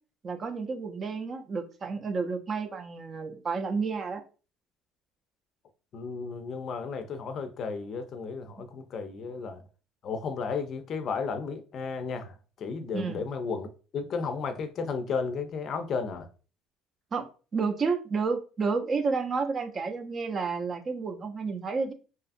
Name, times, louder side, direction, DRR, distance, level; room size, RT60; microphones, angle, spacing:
voice 1, 0.2-4.2 12.9-13.2 17.1-17.3 17.5-21.9, right 4 dB, 35° right, 0.5 m, -30 dB
voice 2, 5.9-9.6 10.0-13.7 13.9-16.3, left 5 dB, 50° left, 0.5 m, -33 dB
2.7 x 2.4 x 2.5 m
cardioid pair, 100°, 0 cm